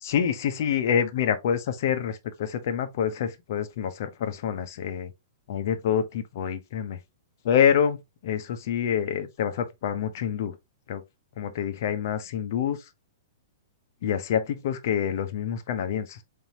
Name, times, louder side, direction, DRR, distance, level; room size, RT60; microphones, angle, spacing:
voice 1, 0.0-5.1 5.5-7.0 7.4-10.6 10.9-11.0 11.4-12.8 14.0-16.2, left 8 dB, 55° left, 0.8 m, -27 dB
4.2 x 3.4 x 2.9 m
hypercardioid pair, 155°, 2 cm